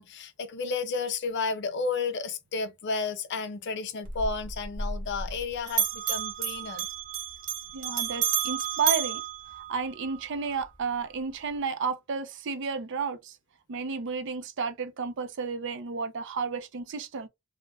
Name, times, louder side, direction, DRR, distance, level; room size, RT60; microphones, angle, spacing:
voice 1, 0.0-6.9, left 4 dB, 50° left, 0.4 m, -32 dB
Bell, 4.0-5.4 5.7-10.2, right 8 dB, 35° right, 1.0 m, -31 dB
voice 2, 7.7-9.2 9.5-13.4 13.7-17.3, right 5 dB, 55° right, 0.4 m, -32 dB
2.4 x 2.1 x 3.2 m
head